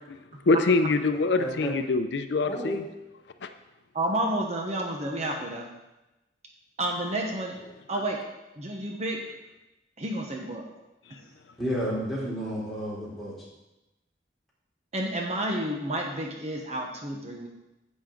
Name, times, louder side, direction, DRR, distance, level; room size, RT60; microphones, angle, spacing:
voice 1, 0.5-2.8 3.4-3.5 7.9-8.0, left 3 dB, 75° left, 8 dB, 0.6 m, -24 dB
voice 2, 1.4-1.7 2.5-2.8 11.6-13.4, equal, ahead, -8 dB, 3.6 m, -31 dB
voice 3, 3.9-5.7 6.8-7.6 7.9-8.2 8.6-9.2 10.0-10.7 14.9-17.5, right 1 dB, 40° right, 1 dB, 1.0 m, -30 dB
10.5 x 8.4 x 3.8 m, 0.99 s
head